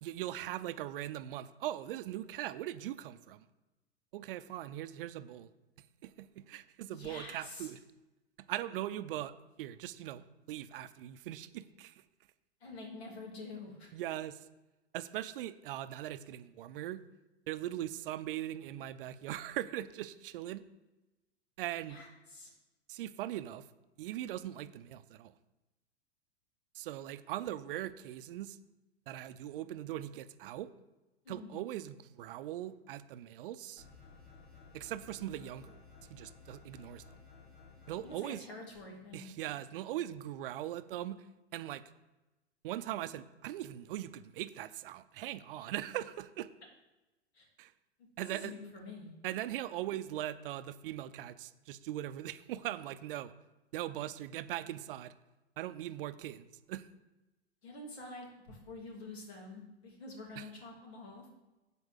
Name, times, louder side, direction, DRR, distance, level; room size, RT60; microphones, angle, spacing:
voice 1, 0.0-3.5 4.1-5.5 6.0-7.8 8.5-11.9 13.9-14.4 14.9-17.0 17.5-20.6 21.6-22.0 22.9-23.6 24.0-25.3 26.7-28.6 29.1-30.7 31.3-33.8 34.7-35.8 36.1-37.0 37.9-38.4 39.1-41.2 41.5-41.8 42.6-46.5 47.6-47.7 48.2-48.5 49.2-53.3 53.7-55.1 55.6-56.8 60.4-60.5, right 13 dB, 55° right, 13 dB, 0.6 m, -40 dB
voice 2, 6.9-7.7 12.6-13.9 21.9-22.5 31.2-31.6 38.0-39.3 47.3-47.5 48.3-49.1 57.6-61.3, left 2 dB, 70° left, 0 dB, 2.8 m, -47 dB
sound 1, 33.8-38.2, left 5 dB, 90° left, 3.0 m, -56 dB
8.1 x 4.6 x 7.3 m, 1.1 s
hypercardioid pair, 100°, 33 cm